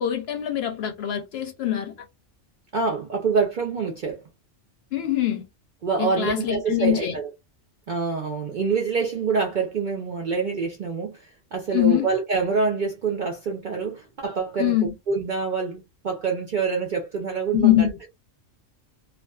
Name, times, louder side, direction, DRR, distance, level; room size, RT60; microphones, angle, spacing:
voice 1, 0.0-1.9 4.9-5.4 6.0-7.1 11.7-12.1 14.6-14.9 17.5-17.9, left 13 dB, 65° left, 0.7 m, -23 dB
voice 2, 2.7-4.2 5.8-7.3 7.9-14.8 15.1-17.7, right 5 dB, 60° right, 0.5 m, -26 dB
2.4 x 2.3 x 2.3 m
omnidirectional pair, 1.3 m